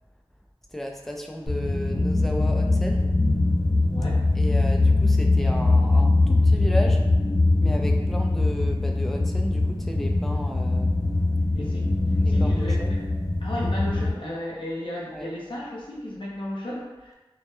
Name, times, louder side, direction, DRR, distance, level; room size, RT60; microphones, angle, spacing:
voice 1, 0.7-3.1 4.3-7.0 7.6-10.9 12.2-13.0 15.1-15.3, equal, 5° left, 1 dB, 0.3 m, -34 dB
sound 1, 1.5-14.1, left 2 dB, 40° left, 1.0 m, -22 dB
voice 2, 3.9-4.2 11.5-11.9 12.3-13.0 13.4-17.1, left 1 dB, 60° left, -6 dB, 0.6 m, -34 dB
2.2 x 2.1 x 2.9 m, 1.1 s
wide cardioid pair, 40°, 10 cm